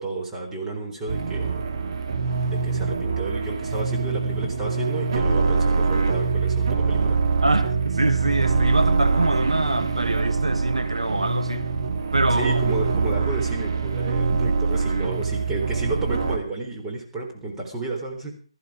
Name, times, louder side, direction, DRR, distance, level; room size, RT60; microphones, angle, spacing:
voice 1, 0.0-1.6 2.5-7.2 12.3-18.3, right 3 dB, 10° right, 3.9 m, -31 dB
sound 1, 1.1-16.4, right 4 dB, 45° right, 2.5 m, -24 dB
voice 2, 7.4-11.7 12.1-12.6, right 2 dB, 75° right, 1.7 m, -24 dB
19.0 x 14.5 x 5.0 m
figure-of-eight pair, 150°, 3 cm